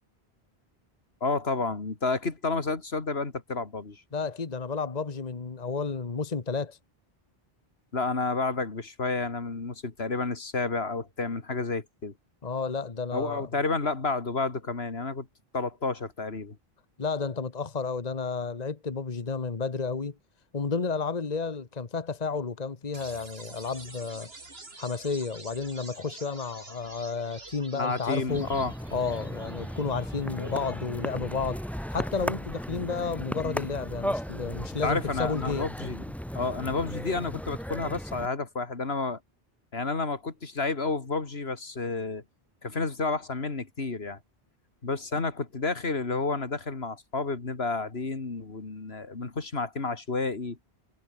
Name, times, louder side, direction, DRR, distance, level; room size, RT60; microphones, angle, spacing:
voice 1, 1.2-4.0 7.9-12.1 13.1-15.3 15.5-16.6 27.7-28.7 30.4-30.5 34.8-36.0 36.3-39.2 39.7-42.2 42.6-44.2 44.8-50.6, left 3 dB, 80° left, 2.7 m, -30 dB
voice 2, 4.1-6.8 12.4-13.5 17.0-20.1 20.5-24.3 24.7-28.5 28.9-35.7, left 4 dB, 40° left, 1.4 m, -32 dB
sound 1, 22.9-36.9, right 3 dB, 75° right, 3.2 m, -50 dB
sound 2, 28.3-38.3, equal, ahead, 1.6 m, -36 dB
omnidirectional pair, 1.0 m